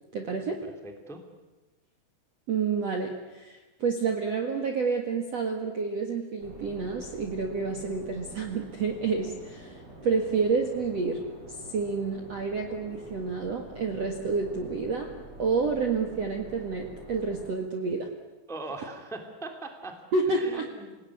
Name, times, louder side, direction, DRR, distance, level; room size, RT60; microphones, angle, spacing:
voice 1, 0.1-0.6 2.5-11.2 11.5-15.1 15.4-18.1 20.1-20.7, right 4 dB, 50° right, 3 dB, 2.1 m, -29 dB
voice 2, 0.8-1.2 18.5-19.9 20.3-21.0, right 2 dB, ahead, 4 dB, 1.8 m, -40 dB
sound 1, 6.4-17.5, right 1 dB, 15° right, 8.2 m, -47 dB
27.5 x 18.0 x 9.7 m, 1.1 s
omnidirectional pair, 5.2 m